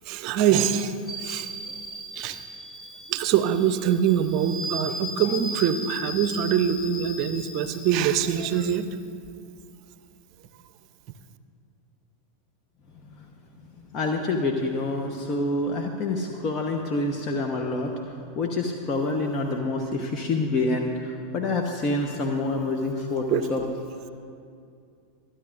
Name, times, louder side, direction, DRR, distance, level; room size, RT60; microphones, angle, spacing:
voice 1, 0.1-0.9 1.2-1.5 2.2-2.4 3.1-8.9 23.3-23.4, right 9 dB, 45° right, 11 dB, 0.6 m, -24 dB
sound 1, 1.1-8.7, equal, 20° left, 1.9 m, -37 dB
voice 2, 13.9-17.9 18.4-23.6, left 2 dB, 35° left, 2 dB, 1.0 m, -27 dB
26.5 x 10.0 x 2.5 m, 2.4 s
figure-of-eight pair, 85°, 0 cm